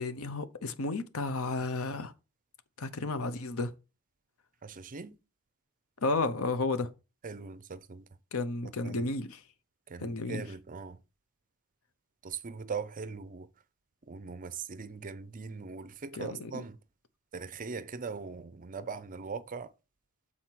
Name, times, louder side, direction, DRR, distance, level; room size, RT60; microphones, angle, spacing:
voice 1, 0.0-2.1 2.8-3.7 6.0-6.9 8.3-9.4 10.0-10.5 16.1-16.6, left 3 dB, 65° left, 0.8 m, -32 dB
voice 2, 4.6-5.2 7.2-8.1 8.8-9.1 9.9-11.0 12.2-13.5 14.0-16.8 17.3-19.7, right 5 dB, 40° right, 0.6 m, -40 dB
7.6 x 4.2 x 4.5 m
head